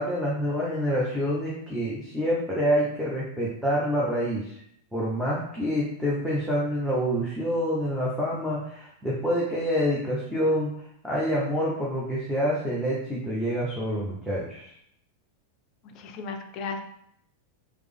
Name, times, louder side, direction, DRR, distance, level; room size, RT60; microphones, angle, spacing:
voice 1, 0.0-4.6 4.9-10.7 11.0-14.7, equal, ahead, -7 dB, 0.7 m, -27 dB
voice 2, 15.8-16.8, left 4 dB, 40° left, 5 dB, 0.4 m, -35 dB
3.2 x 2.0 x 3.3 m, 0.69 s
figure-of-eight pair, 90°, 0 cm